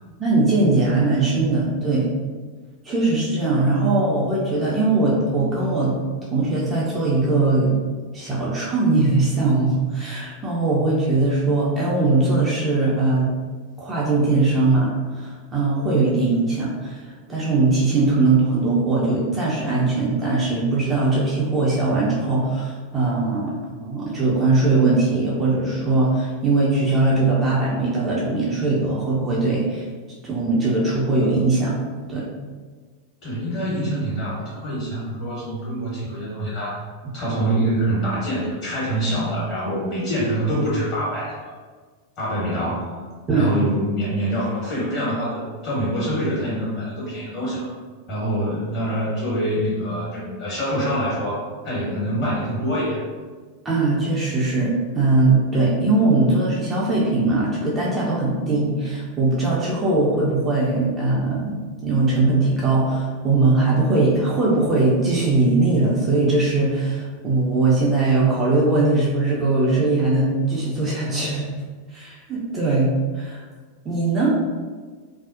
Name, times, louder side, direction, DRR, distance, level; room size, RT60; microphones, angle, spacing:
voice 1, 0.2-2.1 2.8-6.0 6.3-7.8 8.1-13.3 13.8-14.9 15.1-29.8 30.3-31.8 32.1-32.3 43.3-43.5 53.6-71.5 71.9-73.4 73.8-74.3, right 3 dB, 20° right, -6 dB, 0.5 m, -20 dB
voice 2, 33.2-36.8 37.1-41.5 42.2-43.0 43.3-47.7 48.1-53.0, right 1 dB, 40° left, -8 dB, 1.3 m, -25 dB
2.5 x 2.0 x 2.5 m, 1.5 s
figure-of-eight pair, 90°, 0 cm